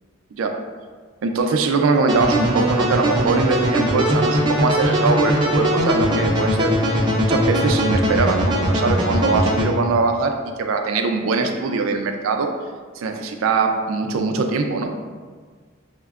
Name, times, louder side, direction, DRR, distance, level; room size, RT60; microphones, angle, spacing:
voice 1, 1.2-12.5 13.0-14.9, right 4 dB, 85° right, 5 dB, 0.4 m, -22 dB
sound 1, 2.1-9.7, equal, 20° right, 0.4 m, -20 dB
5.7 x 2.1 x 2.3 m, 1.5 s
head